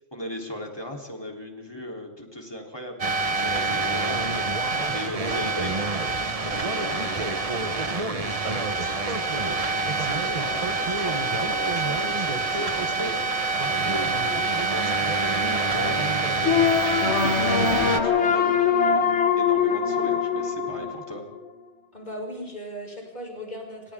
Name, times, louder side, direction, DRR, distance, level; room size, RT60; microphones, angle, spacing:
voice 1, 0.1-5.9 6.4-21.2, left 1 dB, 20° left, 1 dB, 3.7 m, -37 dB
sound 1, 3.0-18.0, right 3 dB, 30° right, 1.1 m, -26 dB
sound 2, 16.4-21.5, left 7 dB, 60° left, 2.2 m, -22 dB
voice 2, 21.9-23.9, equal, 35° left, -1 dB, 6.8 m, -37 dB
29.5 x 25.5 x 3.8 m, 1.0 s
omnidirectional pair, 1.3 m